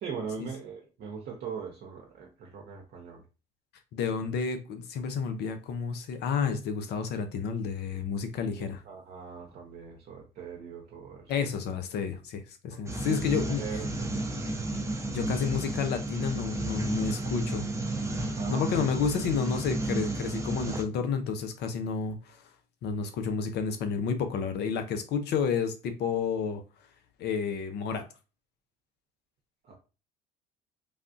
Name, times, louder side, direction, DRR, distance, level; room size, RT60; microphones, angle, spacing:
voice 1, 0.0-3.2 8.6-11.3 12.7-12.8 13.1-14.1 18.3-18.9 29.6-29.8, right 6 dB, 50° right, 0.8 m, -41 dB
voice 2, 3.9-8.8 11.3-13.8 15.1-17.7 18.5-22.4 22.8-26.6 27.2-28.1, left 6 dB, 55° left, 0.6 m, -30 dB
sound 1, 12.9-20.8, right 2 dB, 15° right, 0.7 m, -32 dB
3.4 x 2.4 x 2.6 m
hypercardioid pair, 65°, 20 cm